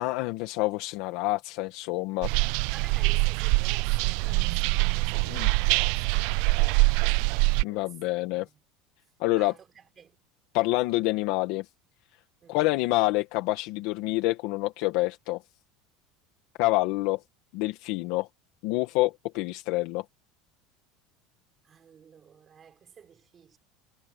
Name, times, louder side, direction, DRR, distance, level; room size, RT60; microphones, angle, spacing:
voice 1, 0.0-2.3 5.3-5.5 7.6-8.4 9.2-9.5 10.5-11.6 12.5-15.4 16.6-17.2 17.5-18.3 18.6-20.0, left 19 dB, 60° left, 1.6 m, -27 dB
sound 1, 2.2-7.6, right 28 dB, 60° right, 0.3 m, -24 dB
voice 2, 2.7-7.2 7.7-8.6 9.3-10.2 12.4-12.8 21.6-23.6, right 7 dB, 25° right, 5.6 m, -52 dB
supercardioid pair, 160°, 0 cm